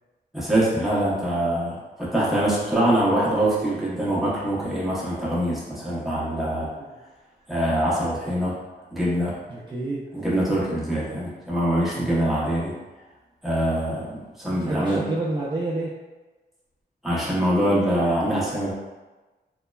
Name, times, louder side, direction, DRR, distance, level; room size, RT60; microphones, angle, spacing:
voice 1, 0.3-6.7 7.5-8.6 8.9-9.3 10.1-12.8 13.4-15.0 17.0-18.7, right 1 dB, ahead, -8 dB, 0.8 m, -24 dB
voice 2, 9.5-10.0 12.0-12.2 14.6-15.9, right 2 dB, 25° right, -7 dB, 0.4 m, -29 dB
3.0 x 2.1 x 2.2 m, 1.2 s
wide cardioid pair, 125°, 17 cm